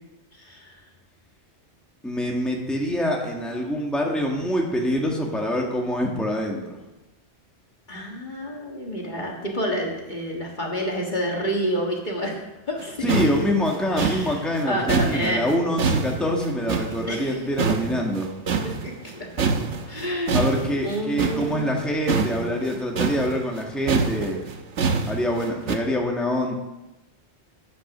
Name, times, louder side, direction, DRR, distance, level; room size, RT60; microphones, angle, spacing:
voice 1, 0.4-0.7 7.9-12.4 12.7-13.3 13.9-15.5 17.1-17.4 18.6-19.5 19.9-21.7, equal, 45° left, -1 dB, 1.9 m, -29 dB
voice 2, 2.0-6.7 13.0-18.3 20.3-24.4 25.1-26.5, equal, ahead, -1 dB, 1.6 m, -25 dB
sound 1, 12.8-12.9 13.1-17.3 17.6-19.1 19.4-25.8, right 5 dB, 90° right, 1.3 m, -26 dB
10.0 x 8.4 x 6.1 m, 1.0 s
omnidirectional pair, 1.2 m